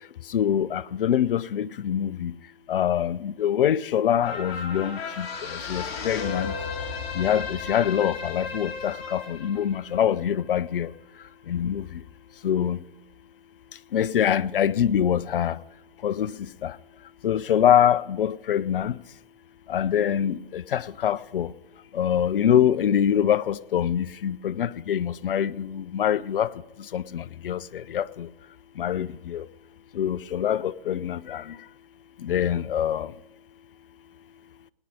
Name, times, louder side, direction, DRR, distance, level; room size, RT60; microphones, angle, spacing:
voice 1, 0.3-2.3 2.7-5.3 5.7-6.5 7.2-10.9 11.5-11.8 12.4-12.8 13.9-15.6 16.0-16.3 16.6-16.7 17.2-18.9 19.7-21.5 22.0-26.5 26.9-27.6 27.9-28.0 28.8-29.1 29.3-29.4 30.0-31.4 32.3-33.1, left 9 dB, 60° left, 0.6 m, -24 dB
sound 1, 4.2-10.9 11.3-11.4, left 5 dB, 35° left, 2.8 m, -35 dB
18.0 x 10.0 x 5.3 m
figure-of-eight pair, 125°, 30 cm